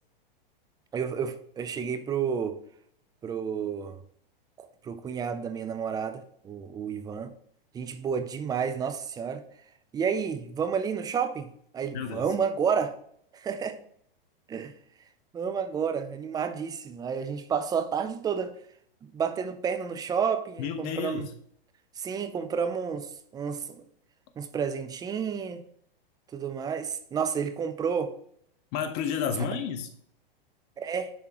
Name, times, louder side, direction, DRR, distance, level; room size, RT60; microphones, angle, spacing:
voice 1, 0.9-2.6 3.2-4.0 4.6-7.3 7.7-9.4 9.9-13.0 13.3-13.8 14.5-14.7 15.3-18.5 19.0-21.3 22.0-23.8 24.4-25.6 26.3-28.1 30.8-31.1, right 6 dB, 15° right, 0.4 m, -30 dB
voice 2, 20.6-21.3 28.7-29.9, left 7 dB, 45° left, 1.0 m, -31 dB
10.0 x 3.5 x 2.9 m
hypercardioid pair, 120°, 29 cm